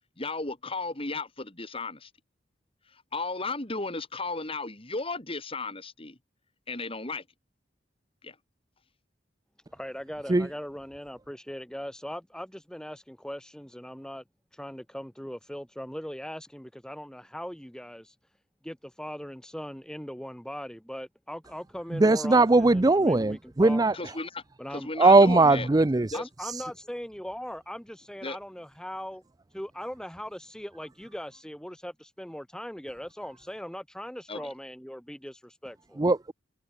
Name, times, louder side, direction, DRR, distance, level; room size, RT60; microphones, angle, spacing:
voice 1, 0.2-2.1 2.9-6.2 6.7-7.2 8.2-8.4 23.9-24.4 24.7-25.7 26.1-26.2 28.2-28.4 34.3-34.5, left 3 dB, 30° left, 3.6 m, -34 dB
voice 2, 9.7-14.2 14.5-18.2 18.6-23.8 24.6-24.9 26.1-29.2 29.5-36.0, equal, 5° left, 1.1 m, -40 dB
voice 3, 21.9-23.9 25.0-26.1 36.0-36.3, right 2 dB, 20° right, 0.5 m, -20 dB
head